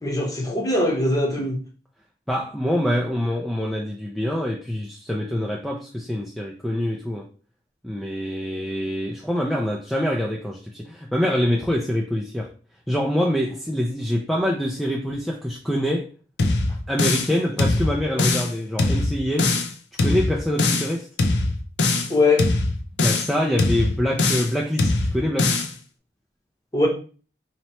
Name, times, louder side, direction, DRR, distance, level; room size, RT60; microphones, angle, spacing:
voice 1, 0.0-1.6 22.1-22.5 26.7-26.9, left 2 dB, 20° left, 0.9 m, -21 dB
voice 2, 2.3-7.3 7.8-12.5 12.9-16.1 16.9-19.6 20.0-21.1 23.0-25.7, equal, ahead, 0.4 m, -25 dB
sound 1, 16.4-17.3 17.6-18.5 18.8-19.7 20.0-20.9 21.2-22.1 22.4-23.3 23.6-24.5 24.8-25.7, left 2 dB, 75° left, 0.6 m, -22 dB
4.3 x 2.9 x 3.0 m
head